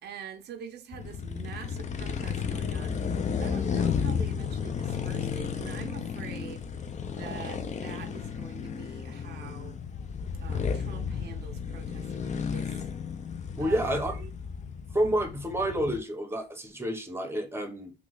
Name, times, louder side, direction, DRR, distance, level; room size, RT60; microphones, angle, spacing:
voice 1, 0.0-3.0 3.3-6.7 7.0-9.8 10.4-12.9 13.6-14.3, right 7 dB, 55° right, 0.5 m, -45 dB
sound 1, 0.9-16.0, left 6 dB, 35° left, 0.5 m, -33 dB
voice 2, 13.5-14.2 14.9-17.9, right 1 dB, 10° right, 0.8 m, -29 dB
3.0 x 2.3 x 3.8 m
cardioid pair, 90°, 20 cm